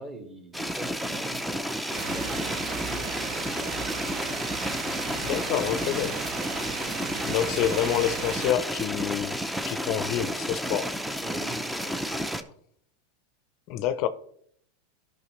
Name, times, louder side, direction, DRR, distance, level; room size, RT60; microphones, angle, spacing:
voice 1, 0.0-3.9 6.0-6.3 11.2-12.5, right 2 dB, 25° right, 1.9 m, -44 dB
sound 1, 0.5-12.4, equal, 5° right, 0.6 m, -32 dB
sound 2, 1.9-8.5, right 6 dB, 45° right, 0.9 m, -35 dB
voice 2, 5.2-6.2 7.3-9.4 9.7-11.0 13.7-14.1, left 11 dB, 55° left, 0.5 m, -27 dB
12.5 x 5.7 x 3.1 m
hypercardioid pair, 110°, 0 cm